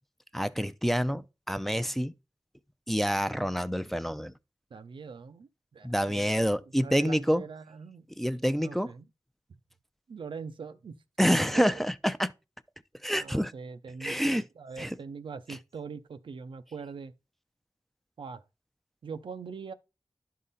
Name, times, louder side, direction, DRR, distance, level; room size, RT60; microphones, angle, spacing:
voice 1, 0.3-2.1 2.9-4.3 5.8-7.4 8.2-8.9 11.2-12.3 13.0-13.5 14.0-14.4 14.8-15.0, equal, 5° left, 0.5 m, -27 dB
voice 2, 4.7-6.5 6.8-8.1 8.6-9.0 10.1-11.0 11.2-11.8 13.2-17.1 18.2-18.4 19.0-19.7, right 5 dB, 85° right, 0.5 m, -42 dB
11.0 x 3.8 x 4.1 m
wide cardioid pair, 60°, 8 cm